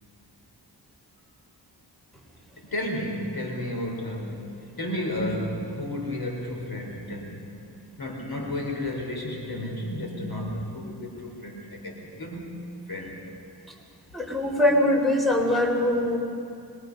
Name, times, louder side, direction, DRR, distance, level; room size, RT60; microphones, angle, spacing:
voice 1, 2.6-7.5 8.0-12.6 12.9-13.2, left 1 dB, 60° left, 1 dB, 4.2 m, -32 dB
voice 2, 14.1-16.2, left 1 dB, ahead, 0 dB, 4.4 m, -22 dB
26.0 x 22.0 x 5.5 m, 2.5 s
cardioid pair, 60°, 41 cm